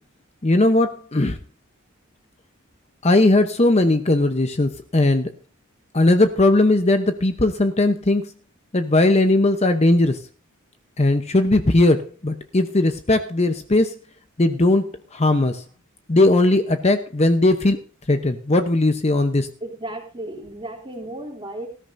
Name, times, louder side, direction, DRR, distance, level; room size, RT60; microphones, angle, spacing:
voice 1, 0.4-1.4 3.0-5.3 5.9-8.3 8.7-10.2 11.0-13.9 14.4-15.6 16.1-17.8 18.1-19.5, left 2 dB, 30° left, 8 dB, 0.8 m, -18 dB
voice 2, 19.6-21.7, right 1 dB, 25° right, 2 dB, 3.0 m, -34 dB
19.0 x 13.5 x 2.6 m, 0.36 s
head